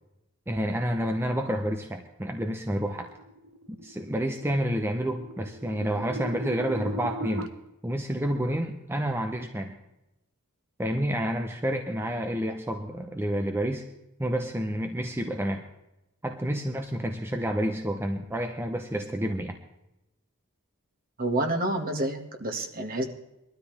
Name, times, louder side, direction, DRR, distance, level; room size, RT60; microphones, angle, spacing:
voice 1, 0.5-3.1 3.7-7.5 7.8-9.8 10.8-13.9 14.2-15.6 16.2-19.6, equal, 10° right, 4 dB, 0.8 m, -29 dB
sound 1, 2.7-7.5, equal, 75° right, 1.2 m, -39 dB
voice 2, 21.2-23.0, right 1 dB, 45° right, 3 dB, 1.9 m, -28 dB
21.5 x 13.0 x 3.4 m, 0.93 s
head